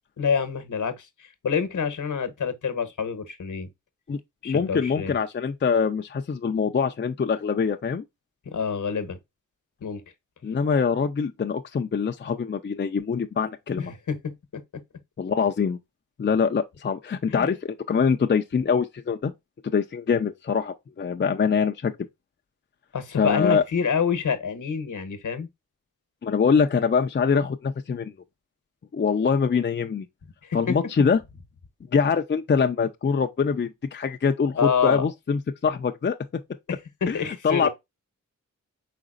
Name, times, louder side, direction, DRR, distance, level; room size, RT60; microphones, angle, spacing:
voice 1, 0.2-3.7 4.4-5.2 8.5-9.2 9.8-10.0 13.8-14.1 17.3-17.5 22.9-25.5 30.4-30.6 34.6-35.0 37.1-37.7, left 6 dB, 70° left, 1.1 m, -27 dB
voice 2, 4.4-8.0 10.4-13.9 15.2-15.8 16.2-19.3 19.7-21.9 23.2-23.6 26.2-28.1 28.9-30.1 30.5-31.2 31.9-36.2 37.1-37.7, left 6 dB, 35° left, 0.5 m, -24 dB
5.1 x 3.9 x 2.4 m
cardioid pair, 55°, 32 cm